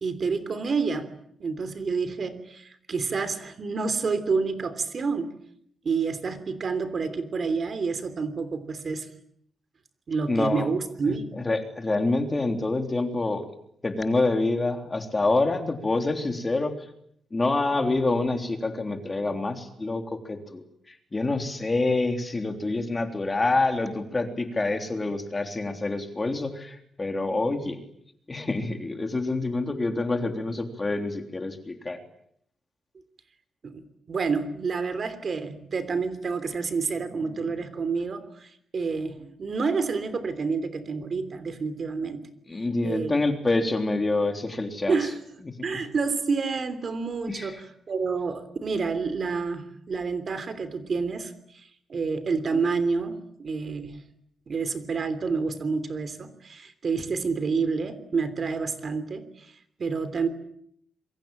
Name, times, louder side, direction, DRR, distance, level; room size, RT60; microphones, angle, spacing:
voice 1, 0.0-1.1 1.4-5.3 5.8-9.1 10.1-11.4 33.6-42.3 42.8-43.2 44.9-45.2 45.6-54.0 54.5-59.5 59.8-60.3, right 4 dB, 45° right, 12 dB, 3.2 m, -29 dB
voice 2, 10.3-10.7 11.1-13.4 13.8-16.8 17.3-20.6 20.9-27.8 28.3-32.0 42.5-45.0 47.3-47.5, left 2 dB, 20° left, 6 dB, 3.5 m, -27 dB
27.0 x 23.5 x 8.9 m, 0.70 s
cardioid pair, 125°, 0 cm